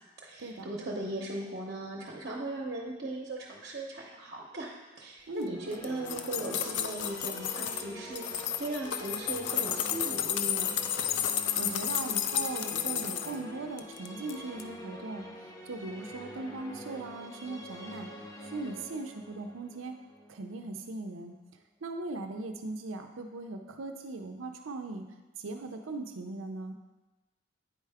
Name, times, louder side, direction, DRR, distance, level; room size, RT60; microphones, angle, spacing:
voice 1, 0.2-4.7 5.0-10.8, right 1 dB, 55° right, -3 dB, 0.8 m, -38 dB
sound 1, 5.3-21.3, equal, 20° left, 0.7 m, -46 dB
sound 2, 5.7-7.9 8.2-13.4 13.8-14.3 14.6-14.7, left 9 dB, 65° left, 0.4 m, -32 dB
voice 2, 11.6-18.1 18.4-20.0 20.3-21.3 21.8-25.0 25.4-26.7, right 2 dB, 90° right, 5 dB, 0.6 m, -39 dB
8.9 x 4.6 x 3.4 m, 1.1 s
head